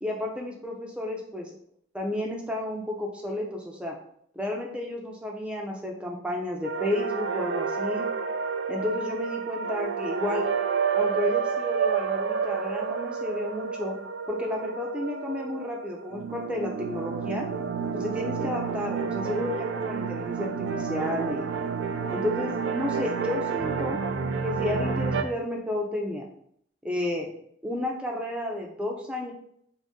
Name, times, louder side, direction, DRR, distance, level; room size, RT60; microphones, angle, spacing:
voice 1, 0.0-1.6 1.9-3.9 4.3-8.1 8.7-10.5 10.9-14.0 14.3-17.5 17.9-21.4 22.1-24.0 24.4-26.3 26.8-27.3 27.6-29.3, left 1 dB, 5° right, -1 dB, 0.5 m, -32 dB
sound 1, 6.6-25.2, right 6 dB, 70° right, 0.3 m, -30 dB
2.7 x 2.6 x 3.5 m, 0.67 s
head